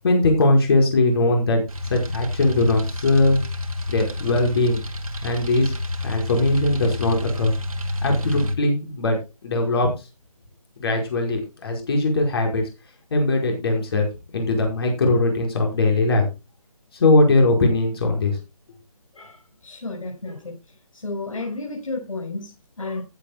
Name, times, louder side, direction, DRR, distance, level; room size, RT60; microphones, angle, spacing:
voice 1, 0.0-1.6 1.8-3.4 3.9-4.8 5.2-5.7 6.0-7.5 8.0-9.2 9.4-9.9 10.8-12.6 13.1-14.0 14.3-16.2 16.9-18.4, left 2 dB, 40° left, 2 dB, 4.9 m, -20 dB
sound 1, 1.7-8.5, left 2 dB, 70° right, 2.8 m, -29 dB
voice 2, 19.1-20.5 20.9-23.0, left 3 dB, 65° left, -1 dB, 5.7 m, -32 dB
15.0 x 10.0 x 2.2 m, 0.27 s
figure-of-eight pair, 155°, 19 cm